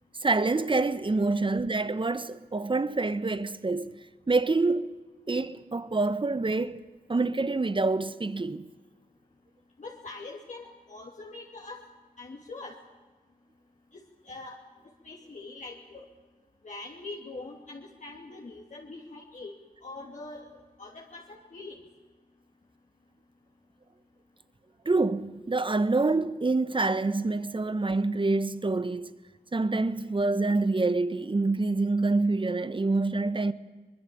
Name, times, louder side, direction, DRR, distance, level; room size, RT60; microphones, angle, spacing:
voice 1, 0.2-4.0 4.3-5.0 5.3-6.8 7.1-8.7 24.8-29.1 29.5-33.5, right 3 dB, 30° right, 1.3 m, -26 dB
voice 2, 9.8-11.8 12.2-12.8 13.9-14.6 15.0-16.1 16.6-19.5 19.8-21.8, left 3 dB, 50° left, 2.8 m, -43 dB
23.5 x 20.5 x 8.6 m
cardioid pair, 55°, 16 cm